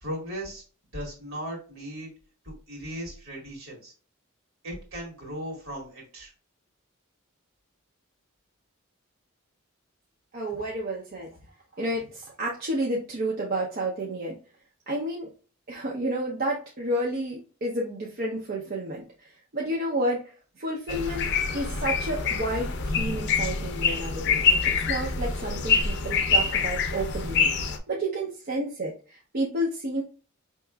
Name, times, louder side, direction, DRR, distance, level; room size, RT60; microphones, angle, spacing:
voice 1, 0.0-0.6 0.9-2.1 2.5-3.9 4.6-6.3, equal, 70° right, -2 dB, 1.7 m, -37 dB
voice 2, 10.3-11.3 11.8-14.4 14.9-15.3 15.7-24.5 24.8-27.5 27.9-30.0, right 1 dB, 45° right, -3 dB, 0.6 m, -31 dB
sound 1, 20.9-27.8, left 5 dB, 55° left, 0.5 m, -25 dB
4.6 x 2.9 x 2.2 m, 0.37 s
head